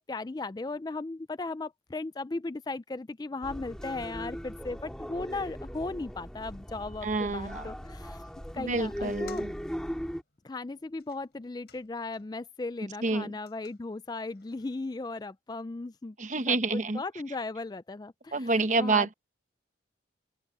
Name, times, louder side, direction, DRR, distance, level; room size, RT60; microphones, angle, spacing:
voice 1, 0.1-8.2 8.5-9.5 10.4-16.2 16.5-19.1, left 3 dB, 20° left, 0.3 m, -37 dB
sound 1, 3.4-10.2, equal, 5° left, 2.1 m, -39 dB
voice 2, 7.0-7.6 8.6-9.5 13.0-13.4 16.2-17.0 18.3-19.1, right 3 dB, 40° right, 1.0 m, -28 dB
sound 2, 9.0-12.5 12.8-14.8, left 8 dB, 60° left, 4.9 m, -60 dB
open air
head